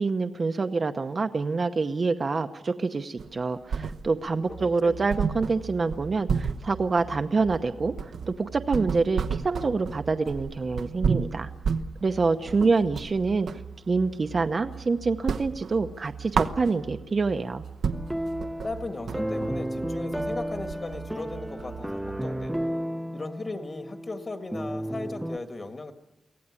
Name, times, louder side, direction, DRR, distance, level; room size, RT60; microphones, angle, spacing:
voice 1, 0.0-11.5 12.0-13.5 13.9-17.6, right 4 dB, 40° right, 7 dB, 0.8 m, -26 dB
sound 1, 3.2-4.4 4.7-4.8 5.1-13.7 14.1-14.8 15.1-17.1 17.5-17.6 17.8-22.0, right 6 dB, 80° right, 0.9 m, -31 dB
sound 2, 4.4-22.5, right 6 dB, 65° right, 1.1 m, -44 dB
voice 2, 12.4-12.7 18.6-22.6 23.1-25.9, left 2 dB, 30° left, 6 dB, 1.8 m, -37 dB
sound 3, 17.9-25.4, equal, 5° right, 0.7 m, -33 dB
24.0 x 17.0 x 9.8 m, 1.0 s
wide cardioid pair, 145°, 0 cm